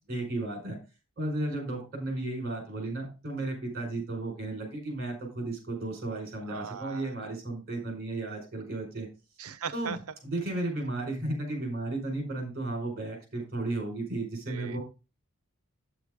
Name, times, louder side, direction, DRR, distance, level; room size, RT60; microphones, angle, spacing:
voice 1, 0.1-0.8 1.2-9.1 9.7-10.0 10.2-14.8, right 2 dB, 45° right, 4.6 m, -34 dB
voice 2, 6.4-7.1 9.4-10.0 14.5-14.8, right 6 dB, 80° right, 0.7 m, -39 dB
8.4 x 7.9 x 3.6 m
head